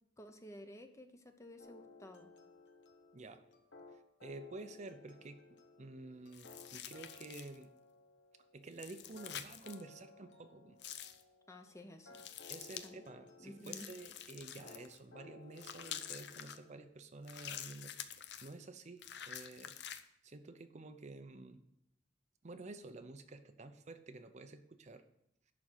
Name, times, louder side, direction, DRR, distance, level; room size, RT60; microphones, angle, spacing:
voice 1, 0.2-2.3 11.5-12.2 12.8-13.0 13.4-13.9, left 1 dB, 15° left, 7 dB, 0.8 m, -53 dB
sound 1, 1.6-16.9, left 3 dB, 85° left, 1.2 m, -59 dB
voice 2, 3.9-7.7 8.5-10.8 12.5-21.6 22.4-25.1, right 2 dB, 40° right, 8 dB, 0.6 m, -51 dB
sound 2, 6.3-7.6 8.7-9.8 10.8-11.2 12.1-12.9 13.6-15.0 15.6-16.6 17.2-18.5 19.0-20.0, left 9 dB, 70° left, 0.7 m, -47 dB
11.0 x 4.3 x 7.8 m, 0.78 s
head